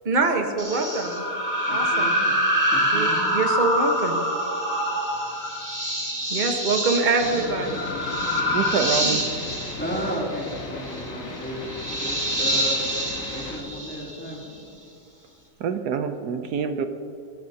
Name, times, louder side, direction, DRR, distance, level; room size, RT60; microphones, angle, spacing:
voice 1, 0.0-1.2 1.7-2.1 2.9-4.2 6.3-7.9 9.0-9.2, right 3 dB, 30° right, 4 dB, 1.1 m, -24 dB
sound 1, 0.6-14.4, equal, 10° right, 2.3 m, -26 dB
voice 2, 1.7-3.4 5.0-5.2 9.7-11.6 12.0-12.8 13.3-14.4, equal, 5° left, -4 dB, 2.8 m, -34 dB
sound 2, 7.2-13.6, left 3 dB, 50° left, 1.7 m, -37 dB
voice 3, 8.5-9.2 15.6-16.9, right 6 dB, 65° right, 8 dB, 1.2 m, -26 dB
22.0 x 17.0 x 2.8 m, 2.6 s
omnidirectional pair, 2.0 m